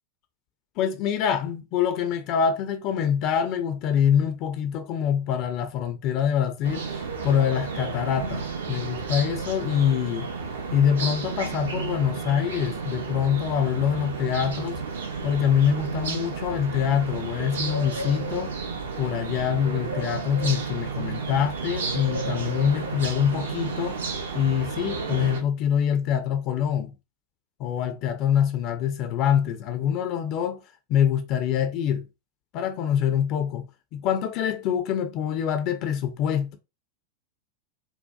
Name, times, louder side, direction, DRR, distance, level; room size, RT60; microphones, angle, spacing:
voice 1, 0.8-10.3 10.7-14.8 15.2-18.5 19.0-24.0 24.3-26.9 27.6-30.6 30.9-32.1 32.5-33.7 33.9-36.6, left 9 dB, 40° left, 0.4 m, -25 dB
sound 1, 6.6-25.4, right 4 dB, 65° right, 0.5 m, -32 dB
2.6 x 2.1 x 2.2 m
figure-of-eight pair, 90°, 0 cm